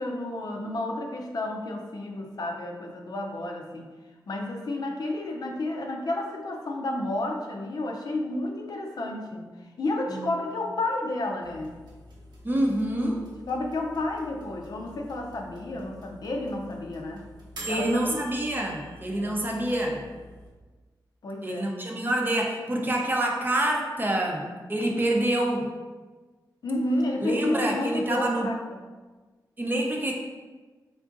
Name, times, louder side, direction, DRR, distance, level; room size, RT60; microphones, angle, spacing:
voice 1, 0.0-3.9 4.3-9.5 9.8-11.7 13.5-17.3 17.7-18.2 19.1-19.4 21.2-21.7 26.6-28.8, left 2 dB, 60° left, 1 dB, 0.5 m, -31 dB
sound 1, 11.4-20.5, right 1 dB, 70° right, 1.0 m, -46 dB
voice 2, 12.4-13.2 17.7-20.0 21.4-25.7 27.2-28.5 29.6-30.1, right 1 dB, 25° right, 0 dB, 0.7 m, -27 dB
3.7 x 3.6 x 2.5 m, 1.3 s
wide cardioid pair, 85°, 8 cm